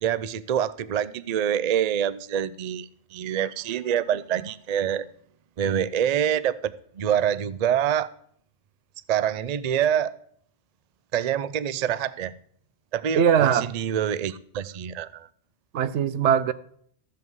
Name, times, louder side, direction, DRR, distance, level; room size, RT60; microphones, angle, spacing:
voice 1, 0.0-5.1 5.6-8.1 9.1-10.1 11.1-12.3 12.9-15.3, right 9 dB, 55° right, 0.4 m, -26 dB
voice 2, 13.2-13.7 15.7-16.5, right 8 dB, 75° right, 0.9 m, -20 dB
14.0 x 7.7 x 4.7 m
omnidirectional pair, 1.2 m